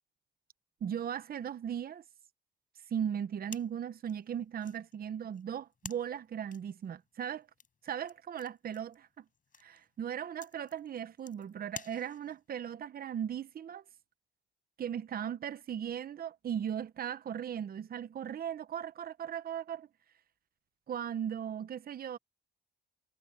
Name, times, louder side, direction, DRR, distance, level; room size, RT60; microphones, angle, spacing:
voice 1, 0.8-2.0 2.9-7.5 7.8-9.2 9.6-13.8 14.8-19.9 20.9-22.2, right 9 dB, 50° right, 0.9 m, -37 dB
sound 1, 3.5-12.5, left 6 dB, 45° left, 4.5 m, -52 dB
cardioid pair, 90°, 20 cm